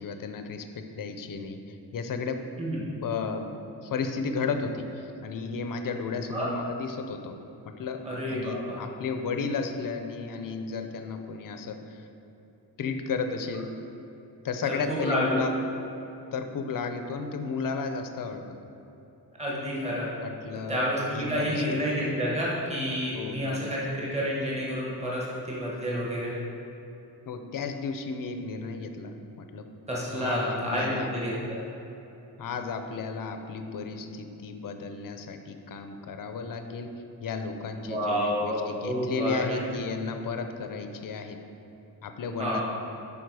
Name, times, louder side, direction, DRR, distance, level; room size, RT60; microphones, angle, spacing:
voice 1, 0.0-2.4 3.0-3.5 3.8-12.1 12.8-13.7 14.4-15.5 16.3-18.6 20.2-20.8 21.1-21.6 21.9-22.1 23.1-23.9 27.3-29.7 30.1-31.1 32.4-36.9 37.2-41.4 42.0-42.6, left 5 dB, 55° left, 7 dB, 0.7 m, -33 dB
voice 2, 8.0-8.8 14.6-15.4 19.4-20.1 20.7-26.3 29.9-31.3 37.8-39.6 42.4-42.6, equal, 15° right, -5 dB, 1.5 m, -29 dB
9.0 x 5.7 x 4.7 m, 3.0 s
wide cardioid pair, 155°, 40 cm